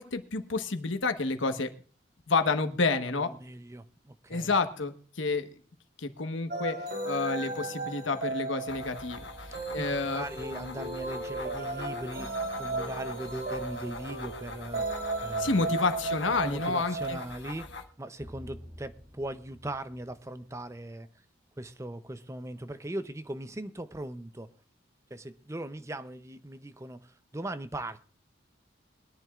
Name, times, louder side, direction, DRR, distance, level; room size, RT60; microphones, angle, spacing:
voice 1, 0.0-1.7 2.3-3.3 4.3-5.5 6.0-9.2 9.7-10.2 15.4-17.2, left 3 dB, 90° left, 1.2 m, -29 dB
voice 2, 3.0-4.5 9.5-14.8 15.2-15.7 16.4-17.7 18.0-21.1 21.6-24.5 25.1-28.0, right 1 dB, 15° right, 0.6 m, -39 dB
sound 1, 6.5-17.2, right 2 dB, 55° right, 3.3 m, -35 dB
sound 2, 8.7-17.8, left 3 dB, 65° left, 1.5 m, -44 dB
sound 3, 18.2-20.9, equal, 35° right, 2.4 m, -49 dB
22.5 x 10.5 x 2.4 m
head